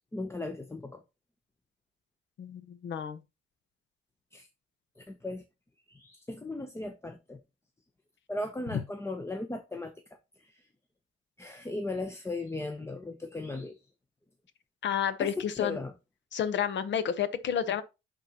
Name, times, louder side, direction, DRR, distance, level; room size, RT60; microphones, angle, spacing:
voice 1, 0.1-1.0 4.3-4.5 5.0-5.4 5.9-7.4 8.3-9.9 10.4-10.6 11.4-13.8 15.2-15.9, left 2 dB, 15° left, 0.8 m, -37 dB
voice 2, 2.4-3.2 8.7-8.8 14.8-15.8 16.3-17.8, left 8 dB, 65° left, 0.9 m, -30 dB
11.5 x 4.0 x 2.9 m
cardioid pair, 90°, 20 cm